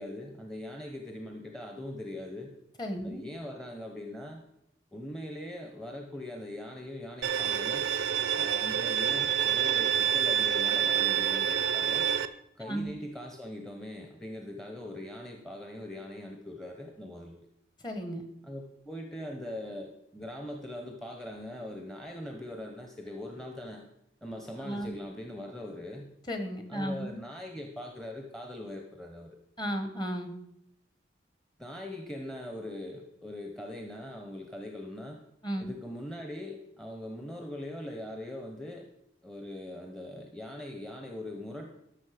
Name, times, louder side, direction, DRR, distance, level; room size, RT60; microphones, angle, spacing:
voice 1, 0.0-2.5 3.0-4.4 4.9-7.9 8.3-12.0 12.6-17.3 18.4-23.9 24.2-26.1 26.7-29.4 31.6-35.2 35.6-38.9 39.2-41.7, left 1 dB, 5° left, 2 dB, 0.7 m, -41 dB
voice 2, 2.8-3.2 12.6-12.9 17.8-18.2 24.6-24.9 26.3-27.2 29.6-30.3 35.4-35.7, equal, 25° left, 6 dB, 1.1 m, -34 dB
Bowed string instrument, 7.2-12.2, right 9 dB, 85° right, 0.5 m, -27 dB
12.5 x 6.3 x 5.0 m, 0.78 s
head